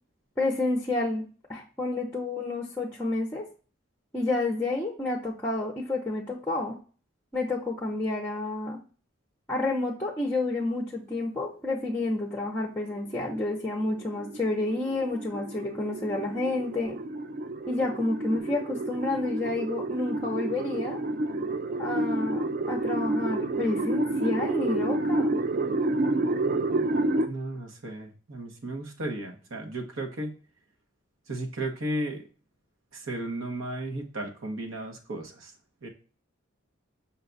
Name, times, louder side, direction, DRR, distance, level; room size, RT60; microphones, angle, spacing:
voice 1, 0.4-1.2 1.5-3.4 4.1-6.8 7.3-8.8 9.5-17.0 17.7-21.0 21.8-25.3, left 2 dB, 10° left, 0 dB, 0.6 m, -29 dB
sound 1, 12.9-27.3, right 2 dB, 45° right, 0.4 m, -29 dB
voice 2, 27.3-30.4 31.3-32.3 32.9-35.5 35.8-35.9, right 1 dB, 80° right, 3 dB, 1.1 m, -34 dB
5.6 x 2.3 x 3.8 m, 0.38 s
head